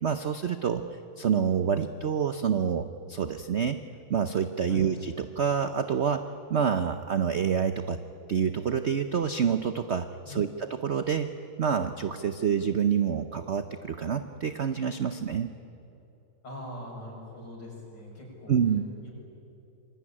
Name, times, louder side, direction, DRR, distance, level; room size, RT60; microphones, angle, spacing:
voice 1, 0.0-3.8 4.1-8.0 8.3-11.3 11.6-15.5 18.5-18.9, right 7 dB, 60° right, 9 dB, 0.7 m, -27 dB
voice 2, 16.4-18.6 19.0-19.1, left 1 dB, 55° left, -1 dB, 7.2 m, -42 dB
26.5 x 21.5 x 9.9 m, 2.9 s
omnidirectional pair, 2.2 m